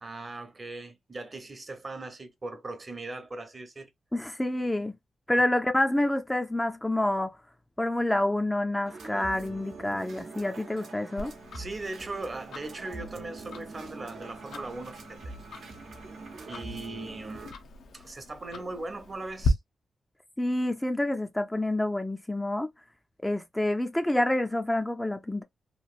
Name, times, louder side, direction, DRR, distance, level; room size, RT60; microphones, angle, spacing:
voice 1, 0.0-3.9 11.5-15.2 16.5-17.6 17.9-19.6, right 2 dB, 40° right, 0.8 m, -39 dB
voice 2, 4.1-4.9 5.3-7.4 7.8-11.3 20.4-22.7 23.2-25.4, left 1 dB, 10° left, 0.4 m, -28 dB
sound 1, 8.8-17.5, right 3 dB, 80° right, 0.8 m, -44 dB
Tick-tock, 11.2-19.5, left 5 dB, 90° left, 0.7 m, -39 dB
3.0 x 2.6 x 2.4 m
cardioid pair, 80°, 0 cm